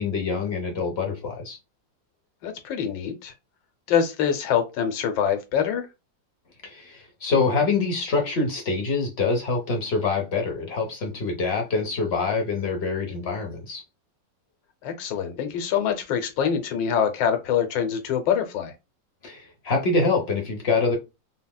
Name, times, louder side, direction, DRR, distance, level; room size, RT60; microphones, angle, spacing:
voice 1, 0.0-1.6 6.6-13.8 19.2-21.0, left 4 dB, 50° left, 0.8 m, -25 dB
voice 2, 2.4-3.3 3.9-5.9 14.8-18.7, left 8 dB, 85° left, 1.4 m, -25 dB
4.0 x 2.1 x 2.2 m
omnidirectional pair, 1.9 m